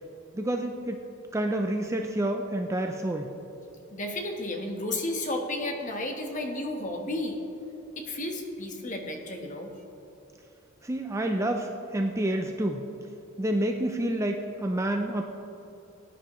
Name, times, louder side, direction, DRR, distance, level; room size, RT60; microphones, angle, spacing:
voice 1, 0.3-1.0 1.3-3.3 10.8-12.9 13.4-15.2, right 1 dB, 15° right, 4 dB, 0.4 m, -28 dB
voice 2, 3.9-7.4 8.0-9.7, left 1 dB, 35° left, 3 dB, 1.2 m, -32 dB
18.0 x 9.0 x 3.1 m, 2.9 s
head